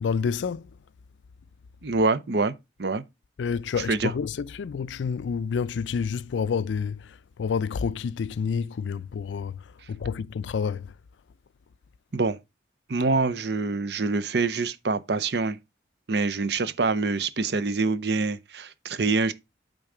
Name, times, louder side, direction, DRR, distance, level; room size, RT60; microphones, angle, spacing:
voice 1, 0.0-0.7 3.4-9.6 9.9-10.9, left 6 dB, 85° left, 0.4 m, -29 dB
voice 2, 1.8-2.5 2.8-3.0 3.9-4.1 12.1-12.4 12.9-15.6 16.1-19.3, right 3 dB, 65° right, 0.6 m, -25 dB
8.8 x 3.8 x 4.8 m
head